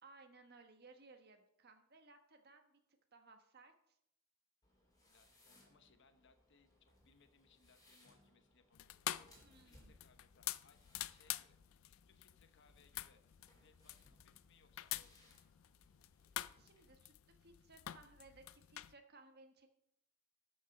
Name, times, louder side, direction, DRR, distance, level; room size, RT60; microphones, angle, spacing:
voice 1, 0.0-2.8 3.1-4.0 9.4-10.0 16.6-19.7, right 3 dB, 50° right, 6 dB, 1.3 m, -62 dB
sound 1, 4.6-16.8, left 1 dB, 20° left, 3.5 m, -70 dB
voice 2, 5.0-9.3 9.6-13.2 13.6-15.3, left 5 dB, 60° left, 8 dB, 1.0 m, -71 dB
sound 2, 8.7-18.9, left 14 dB, 80° left, 0.4 m, -48 dB
12.5 x 6.3 x 5.3 m, 0.74 s
head